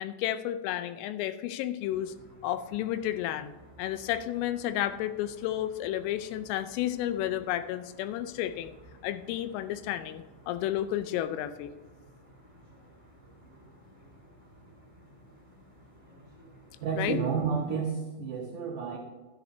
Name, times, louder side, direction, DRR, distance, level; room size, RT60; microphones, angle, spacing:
voice 1, 0.0-2.1 2.4-3.5 3.8-8.7 9.0-11.7 17.0-17.2, left 12 dB, 85° left, 11 dB, 3.2 m, -32 dB
sound 1, 1.8-17.8, equal, 10° left, 2.0 m, -55 dB
voice 2, 16.8-19.0, right 6 dB, 75° right, -3 dB, 1.9 m, -30 dB
13.0 x 9.5 x 2.7 m, 1.2 s
omnidirectional pair, 5.7 m